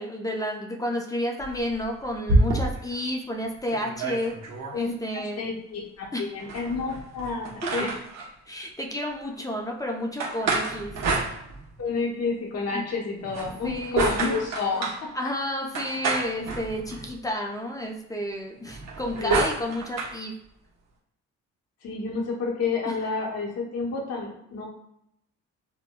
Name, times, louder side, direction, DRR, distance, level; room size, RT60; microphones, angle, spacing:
voice 1, 0.0-4.3 4.7-5.5 6.1-6.3 7.8-7.9 8.5-11.0 12.7-12.8 13.6-14.1 15.1-20.3 22.9-23.0, left 1 dB, 10° left, 1 dB, 0.5 m, -31 dB
sound 1, 1.4-3.0 3.4-3.5 3.7-4.8 6.4-8.3 10.2-11.9 13.2-15.0 15.7-17.2 18.6-20.2, right 2 dB, 65° right, 0.9 m, -28 dB
voice 2, 4.7-7.9 11.8-14.9 19.2-19.5 21.8-24.6, left 4 dB, 55° left, -2 dB, 0.9 m, -30 dB
4.8 x 2.1 x 2.2 m, 0.75 s
cardioid pair, 90°, 30 cm